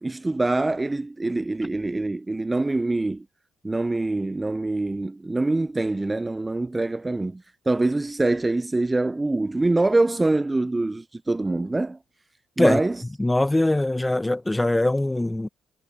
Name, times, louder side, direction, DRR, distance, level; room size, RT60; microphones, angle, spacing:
voice 1, 0.0-3.2 3.6-12.0 12.6-13.0, right 2 dB, 20° right, 0.6 m, -24 dB
voice 2, 13.2-15.5, left 1 dB, 15° left, 1.4 m, -22 dB
hypercardioid pair, 50°, 0 cm